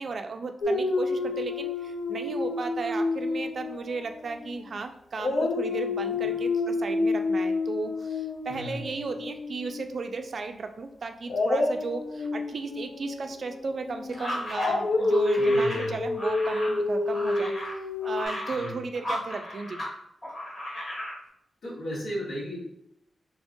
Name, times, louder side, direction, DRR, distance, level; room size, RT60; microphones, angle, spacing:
voice 1, 0.0-17.5 18.0-19.8, right 4 dB, 45° right, 7 dB, 0.3 m, -35 dB
Dog, 0.6-4.8 5.2-10.2 11.3-18.3, left 2 dB, 75° left, 0.5 m, -29 dB
voice 2, 8.5-8.9 15.4-16.0 18.5-18.7 21.6-22.7, equal, 90° left, -9 dB, 1.4 m, -35 dB
sound 1, 14.1-19.9 20.2-21.2, left 1 dB, 40° left, 1.2 m, -35 dB
3.6 x 3.3 x 2.6 m, 0.75 s
wide cardioid pair, 175°, 0 cm